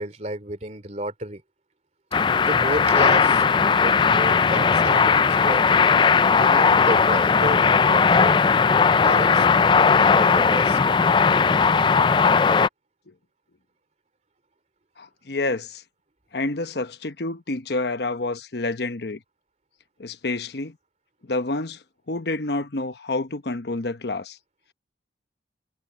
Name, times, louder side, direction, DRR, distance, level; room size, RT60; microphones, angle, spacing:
voice 1, 0.0-1.4 2.5-3.4 3.7-5.6 6.3-8.5 9.0-9.5 10.0-10.8, right 1 dB, 40° right, 3.1 m, -31 dB
sound 1, 2.1-12.7, left 5 dB, 25° left, 0.3 m, -18 dB
voice 2, 15.0-15.8 16.3-19.2 20.0-20.8 21.3-24.4, left 2 dB, 65° left, 1.0 m, -28 dB
head